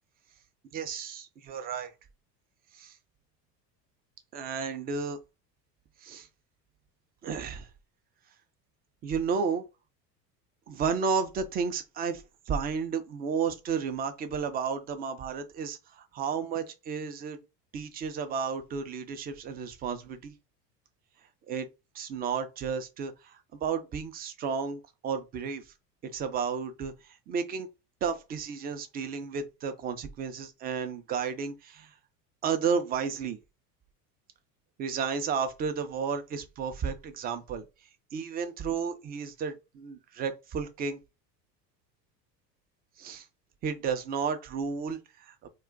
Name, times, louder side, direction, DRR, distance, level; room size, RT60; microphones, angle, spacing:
voice 1, 0.7-1.9 2.7-2.9 4.3-5.2 6.0-6.3 7.2-7.7 9.0-9.6 10.7-17.4 17.7-20.3 21.5-21.7 21.9-25.6 26.0-27.7 28.0-31.9 32.4-33.4 34.8-37.6 38.1-41.0 43.0-43.3 43.6-45.5, right 6 dB, 20° right, 0.3 m, -32 dB
2.3 x 2.2 x 3.7 m
hypercardioid pair, 80°, 50 cm